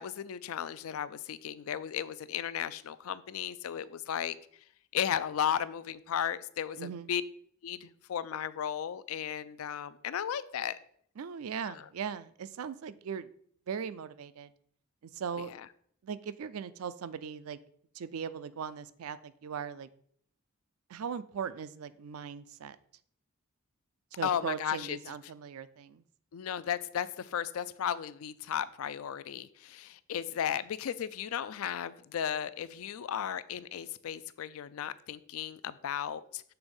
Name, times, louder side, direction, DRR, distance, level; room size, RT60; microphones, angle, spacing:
voice 1, 0.0-4.4 4.9-7.2 7.6-10.8 11.7-11.8 15.5-15.6 24.2-25.0 26.3-36.4, left 9 dB, 75° left, 16 dB, 0.4 m, -35 dB
voice 2, 6.8-7.1 11.2-13.3 13.7-14.5 15.0-15.5 16.0-17.6 17.9-19.9 20.9-22.8 24.1-26.0, right 7 dB, 80° right, 15 dB, 0.4 m, -39 dB
6.9 x 3.5 x 5.3 m, 0.63 s
head